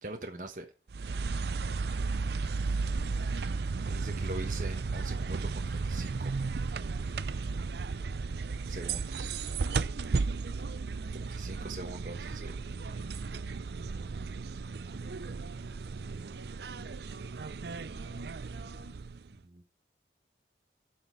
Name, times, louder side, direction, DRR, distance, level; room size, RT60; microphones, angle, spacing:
voice 1, 0.0-0.7 2.6-2.9 3.9-6.4 8.7-9.4 11.1-12.6 19.4-19.6, right 2 dB, 45° right, 1.3 m, -42 dB
sound 1, 0.9-19.4, right 4 dB, 70° right, 0.5 m, -34 dB
voice 2, 1.6-2.1 2.9-3.7 9.2-12.0 12.8-14.1 16.3-19.0, right 2 dB, 85° right, 1.7 m, -52 dB
7.9 x 6.4 x 7.6 m
head